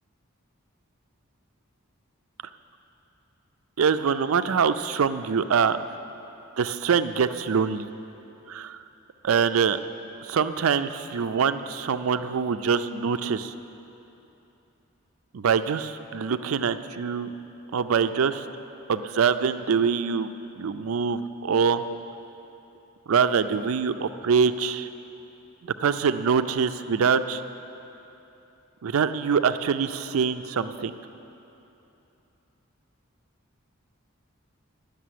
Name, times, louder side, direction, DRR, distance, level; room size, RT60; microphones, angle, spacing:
voice 1, 3.8-5.8 6.6-7.9 8.5-8.8 9.2-9.8 10.2-13.5 15.3-17.3 17.7-18.5 18.9-20.3 20.6-21.8 23.1-24.9 25.8-27.4 28.8-30.9, right 6 dB, 85° right, 11 dB, 0.4 m, -24 dB
11.0 x 6.6 x 9.3 m, 3.0 s
head